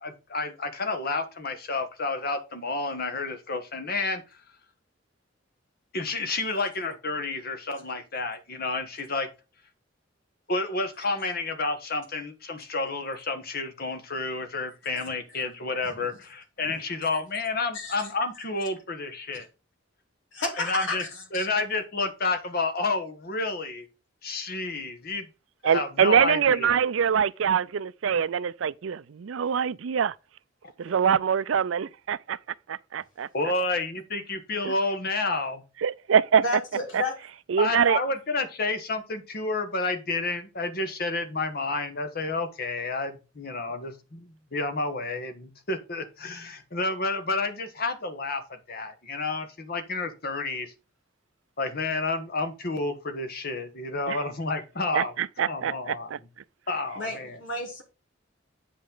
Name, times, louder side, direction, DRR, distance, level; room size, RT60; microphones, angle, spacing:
voice 1, 0.0-4.2 5.9-9.3 10.5-19.5 20.6-21.0 21.3-23.9 24.2-25.3 25.6-26.8 33.3-35.6 37.6-48.4 48.7-50.7 51.6-55.1 55.5-56.1 56.7-57.4, left 3 dB, 50° left, 1.4 m, -30 dB
voice 2, 17.7-18.1 20.3-21.5 36.4-37.1 57.0-57.8, left 2 dB, 70° left, 2.9 m, -32 dB
voice 3, 25.6-30.1 30.8-32.4 32.7-33.3 34.6-34.7 35.8-36.4 36.9-37.0 37.5-38.0 54.1-54.2 54.9-56.2, right 7 dB, 80° right, 0.4 m, -24 dB
8.6 x 5.2 x 3.9 m
head